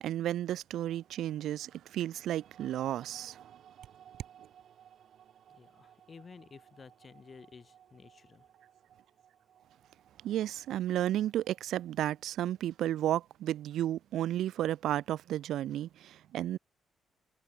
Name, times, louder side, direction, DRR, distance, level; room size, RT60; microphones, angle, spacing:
voice 1, 0.0-3.5 10.2-16.6, right 12 dB, 75° right, 0.3 m, -33 dB
sound 1, 0.8-13.0, right 9 dB, 55° right, 3.1 m, -60 dB
voice 2, 5.5-8.5, left 5 dB, 30° left, 0.8 m, -53 dB
cardioid pair, 165°, 0 cm